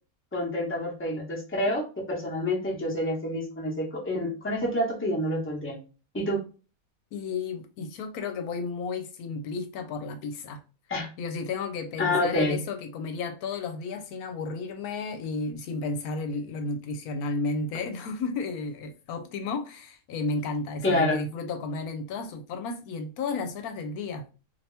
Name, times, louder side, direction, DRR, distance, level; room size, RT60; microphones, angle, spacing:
voice 1, 0.3-5.8 6.1-6.4 10.9-11.1 12.0-12.6 20.8-21.2, left 1 dB, 10° left, 0.9 m, -28 dB
voice 2, 7.1-10.6 11.2-24.3, left 3 dB, 85° left, 1.1 m, -33 dB
2.8 x 2.8 x 3.3 m
omnidirectional pair, 1.5 m